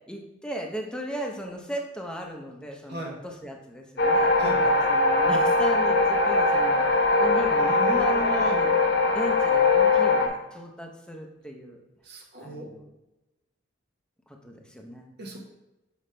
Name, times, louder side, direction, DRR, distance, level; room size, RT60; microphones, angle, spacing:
voice 1, 0.1-8.7 9.1-11.8 12.4-12.9 14.3-15.1, equal, 5° left, 1 dB, 0.7 m, -37 dB
sound 1, 4.0-10.3, left 3 dB, 60° left, 0.9 m, -21 dB
voice 2, 7.6-8.6 12.1-12.7 15.2-15.4, right 1 dB, 55° right, -1 dB, 1.0 m, -35 dB
7.0 x 5.0 x 3.3 m, 0.99 s
head